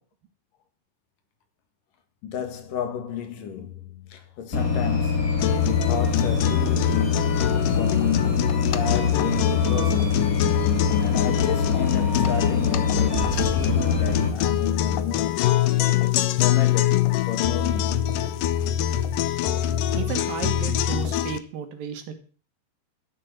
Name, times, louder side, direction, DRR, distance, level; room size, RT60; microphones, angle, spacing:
voice 1, 2.2-10.3 11.0-15.6 16.0-18.0, left 9 dB, 60° left, 2.9 m, -32 dB
sound 1, 4.5-14.3, left 5 dB, 30° left, 1.7 m, -24 dB
sound 2, 5.4-21.4, left 11 dB, 85° left, 1.9 m, -24 dB
voice 2, 19.9-22.1, right 7 dB, 65° right, 3.2 m, -33 dB
13.0 x 7.6 x 7.8 m
omnidirectional pair, 4.9 m